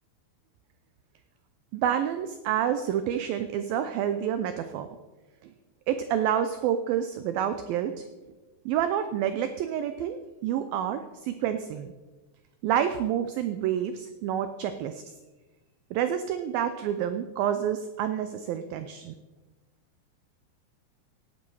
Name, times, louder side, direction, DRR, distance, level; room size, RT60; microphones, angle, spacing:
voice 1, 1.7-4.9 5.4-5.5 5.9-8.0 8.7-11.9 12.6-15.1 15.9-19.1, right 9 dB, 85° right, 9 dB, 2.0 m, -28 dB
17.0 x 10.5 x 4.7 m, 1.2 s
omnidirectional pair, 4.9 m